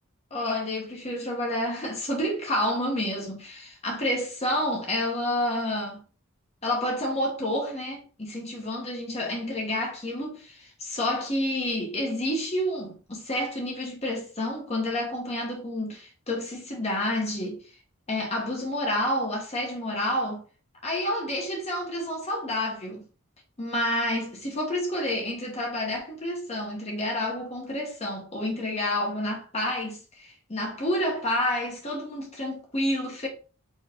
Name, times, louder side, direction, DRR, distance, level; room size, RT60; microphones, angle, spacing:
voice 1, 0.3-6.0 6.6-17.6 18.1-20.4 20.8-23.0 23.6-33.3, left 1 dB, 30° left, 1.2 m, -29 dB
4.5 x 3.2 x 3.6 m
head